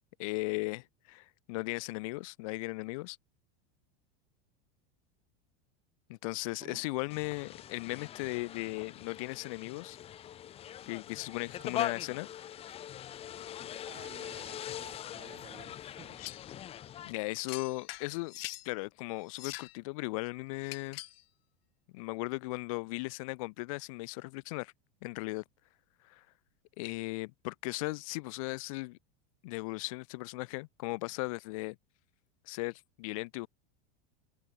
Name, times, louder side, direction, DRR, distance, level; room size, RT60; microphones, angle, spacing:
voice 1, 0.2-3.2 6.1-10.0 10.9-12.3 17.0-18.3 18.6-21.0 21.9-24.7 25.0-25.4 26.0-26.2 26.8-29.0 29.4-31.8 32.5-33.5, left 25 dB, 35° left, 0.4 m, -37 dB
voice 2, 6.6-6.9 13.9-16.2, right 12 dB, 25° right, 4.4 m, -54 dB
sound 1, 7.1-17.1, left 11 dB, 20° left, 1.4 m, -42 dB
sound 2, 16.2-16.5 17.5-18.7 19.3-19.8 20.6-21.2, left 17 dB, 65° left, 3.6 m, -43 dB
supercardioid pair, 175°, 31 cm